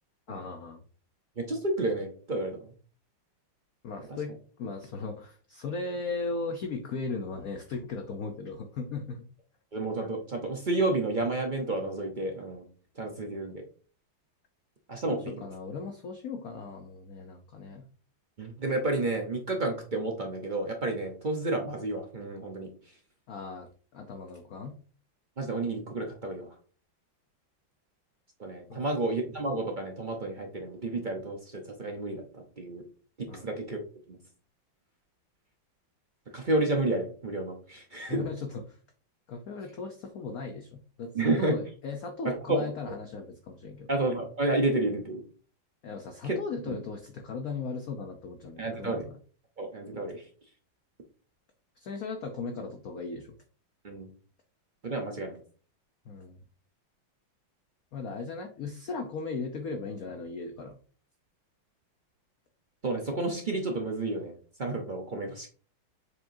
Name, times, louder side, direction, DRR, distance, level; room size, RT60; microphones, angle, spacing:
voice 1, 0.3-0.8 3.8-4.3 4.6-9.2 15.1-17.8 23.3-24.8 28.7-28.9 33.3-33.4 38.1-38.6 39.3-43.9 45.8-49.0 51.8-53.4 56.1-56.4 57.9-60.8, left 4 dB, 60° left, 4 dB, 0.9 m, -37 dB
voice 2, 1.4-2.7 4.1-4.2 9.7-12.7 13.0-13.6 14.9-15.5 18.4-22.7 25.4-26.5 28.4-32.8 33.2-33.8 34.1-34.2 36.3-38.3 41.1-41.6 42.2-42.9 43.9-45.2 46.2-46.4 46.7-46.8 48.6-49.1 49.6-50.3 53.8-54.1 54.8-55.4 62.8-65.5, right 2 dB, 60° right, 2 dB, 0.5 m, -31 dB
7.5 x 4.9 x 2.7 m, 0.41 s
omnidirectional pair, 2.2 m